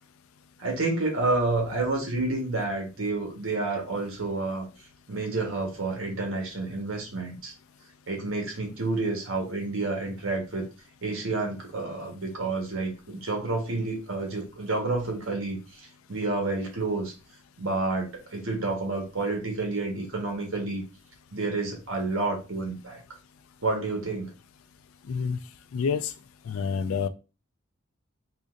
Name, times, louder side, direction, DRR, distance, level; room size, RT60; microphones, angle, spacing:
voice 1, 0.6-4.7 5.1-7.5 8.1-10.7 11.0-17.1 17.6-20.8 21.3-23.0 23.6-24.3, right 3 dB, 70° right, 1 dB, 1.2 m, -29 dB
voice 2, 25.1-25.4 25.7-26.1 26.5-27.1, left 6 dB, 75° left, 13 dB, 0.4 m, -27 dB
3.8 x 2.9 x 2.4 m, 0.31 s
head